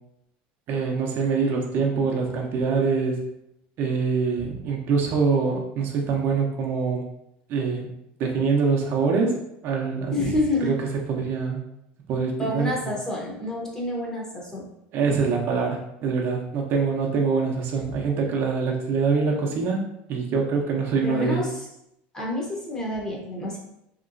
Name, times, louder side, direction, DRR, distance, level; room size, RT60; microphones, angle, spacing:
voice 1, 0.7-3.2 3.8-7.0 7.5-7.9 8.2-10.3 10.6-11.6 12.1-12.9 14.9-19.8 20.1-21.4, right 5 dB, 50° right, 0 dB, 0.6 m, -24 dB
voice 2, 10.1-10.7 12.4-14.7 21.0-21.6 22.1-23.6, left 2 dB, 15° left, -3 dB, 0.8 m, -28 dB
3.0 x 2.9 x 2.5 m, 0.80 s
supercardioid pair, 130°, 5 cm